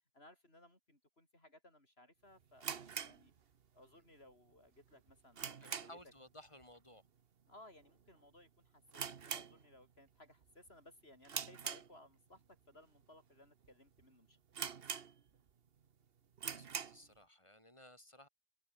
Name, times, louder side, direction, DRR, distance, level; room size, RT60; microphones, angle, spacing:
voice 1, 0.1-3.3 3.7-6.0 7.5-14.4, left 1 dB, 80° left, 7.2 m, -62 dB
sound 1, 2.6-3.9 4.2-4.3 4.8-6.2 6.5-6.8 7.1-7.2 7.8-8.1 8.4-8.5 8.9-10.1 10.4-10.7 11.3-12.4 13.0-13.1 13.6-13.7 14.0-14.1 14.5-15.5 15.9-16.0 16.3-17.1, right 7 dB, 70° right, 1.3 m, -44 dB
voice 2, 5.6-7.0 16.5-18.3, left 1 dB, 30° left, 7.9 m, -58 dB
omnidirectional pair, 1.0 m